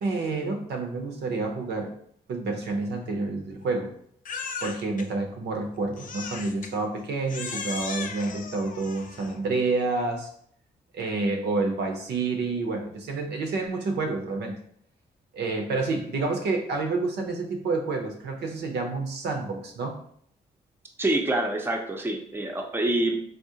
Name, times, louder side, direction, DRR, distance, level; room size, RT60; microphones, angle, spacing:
voice 1, 0.0-1.9 2.3-3.9 4.6-10.3 10.9-14.6 15.3-20.0, right 3 dB, 75° right, 3 dB, 0.6 m, -29 dB
Crying sobbing, 4.3-5.1 6.0-6.7 7.3-9.4, left 5 dB, 50° left, 0.4 m, -36 dB
voice 2, 21.0-23.2, right 1 dB, 15° right, 3 dB, 0.5 m, -26 dB
3.6 x 2.0 x 2.7 m, 0.63 s
supercardioid pair, 55°, 17 cm